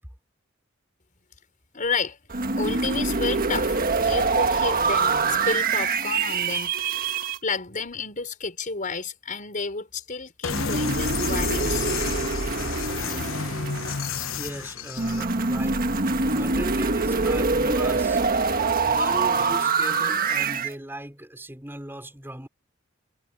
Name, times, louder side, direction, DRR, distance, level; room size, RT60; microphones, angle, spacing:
voice 1, 1.7-6.8 7.4-11.9, left 4 dB, 40° left, 5.1 m, -31 dB
sound 1, 2.3-7.4 10.5-14.3 15.0-20.7, right 4 dB, 45° right, 1.5 m, -24 dB
sound 2, 10.4-15.2, left 6 dB, 80° left, 1.1 m, -31 dB
voice 2, 14.4-18.3 18.9-22.5, right 1 dB, 10° right, 5.3 m, -37 dB
head